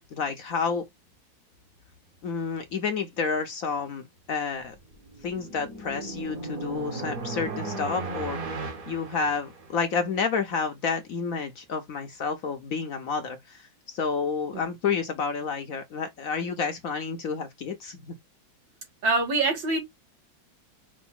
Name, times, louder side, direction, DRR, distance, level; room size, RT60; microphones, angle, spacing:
voice 1, 0.1-0.9 2.2-4.8 5.2-8.4 8.9-18.1, left 5 dB, 65° left, 0.9 m, -30 dB
sound 1, 4.7-9.9, right 3 dB, 50° right, 1.7 m, -36 dB
voice 2, 19.0-19.8, right 3 dB, 85° right, 2.5 m, -24 dB
5.0 x 2.6 x 3.7 m
omnidirectional pair, 2.0 m